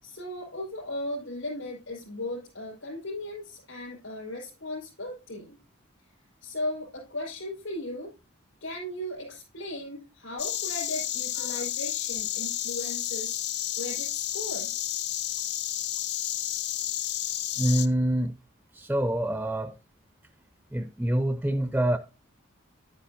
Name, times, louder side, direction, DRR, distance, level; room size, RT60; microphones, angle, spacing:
voice 1, 0.0-5.6 6.4-8.1 8.6-13.4 13.8-14.7, left 1 dB, 70° left, 5.0 m, -37 dB
Insect, 10.4-17.9, left 12 dB, 50° left, 0.6 m, -31 dB
voice 2, 17.6-18.4 18.7-19.8 20.7-22.0, right 1 dB, 5° right, 0.4 m, -26 dB
10.0 x 10.0 x 2.5 m
head